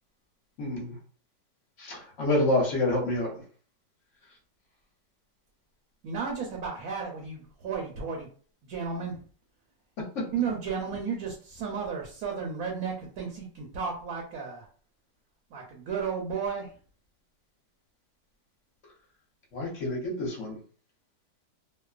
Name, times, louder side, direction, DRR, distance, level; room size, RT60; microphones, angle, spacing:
voice 1, 0.6-1.0 1.8-3.4 10.0-10.3 19.5-20.6, left 1 dB, 55° left, -2 dB, 1.0 m, -28 dB
voice 2, 6.0-8.3 8.6-9.2 10.3-14.7 15.5-16.7, right 6 dB, 70° right, -1 dB, 1.0 m, -33 dB
2.9 x 2.0 x 2.3 m, 0.43 s
omnidirectional pair, 1.9 m